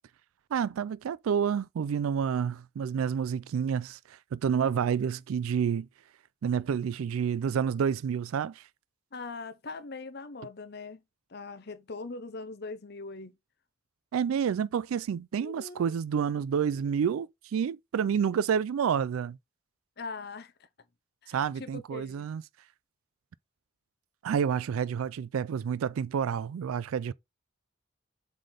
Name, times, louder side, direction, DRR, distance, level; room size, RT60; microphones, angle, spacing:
voice 1, 0.5-5.9 6.4-8.7 14.1-19.4 21.3-22.4 24.2-27.1, right 7 dB, 80° right, 0.3 m, -29 dB
voice 2, 9.1-11.0 11.3-13.3 15.3-15.9 20.0-20.5 21.2-22.3, left 3 dB, 50° left, 0.7 m, -41 dB
7.5 x 3.4 x 3.8 m
head